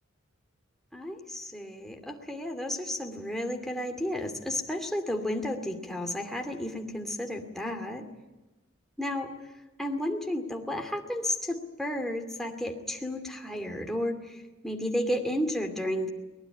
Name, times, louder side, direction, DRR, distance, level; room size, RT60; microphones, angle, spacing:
voice 1, 0.9-8.1 9.0-9.3 9.8-16.1, left 1 dB, ahead, 3 dB, 2.5 m, -32 dB
23.0 x 19.5 x 9.9 m, 1.1 s
head